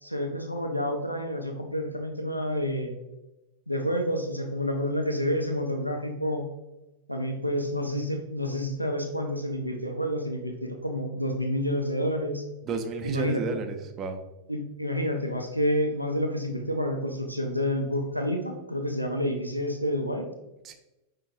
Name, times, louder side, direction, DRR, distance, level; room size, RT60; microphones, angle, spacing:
voice 1, 0.0-2.9 3.7-6.5 7.1-12.4 13.0-13.4 14.5-20.3, equal, 90° left, 3 dB, 0.4 m, -29 dB
voice 2, 12.6-14.2 20.6-20.7, right 4 dB, 30° right, 6 dB, 0.5 m, -32 dB
5.3 x 3.8 x 2.4 m, 0.96 s
figure-of-eight pair, 90°, 0 cm